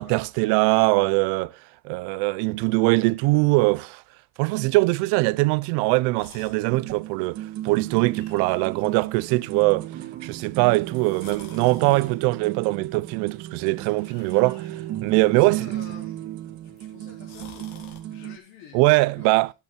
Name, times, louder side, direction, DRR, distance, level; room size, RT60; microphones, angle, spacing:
voice 1, 0.0-1.5 1.8-4.0 4.4-9.9 10.2-15.8 18.7-19.5, right 24 dB, 65° right, 0.6 m, -22 dB
sound 1, 6.2-18.0, left 7 dB, 85° left, 3.8 m, -53 dB
sound 2, 6.7-18.4, right 13 dB, 40° right, 1.6 m, -35 dB
voice 2, 15.2-16.2 16.6-19.3, left 7 dB, 65° left, 4.0 m, -48 dB
12.5 x 8.5 x 4.5 m
cardioid pair, 165°, 42 cm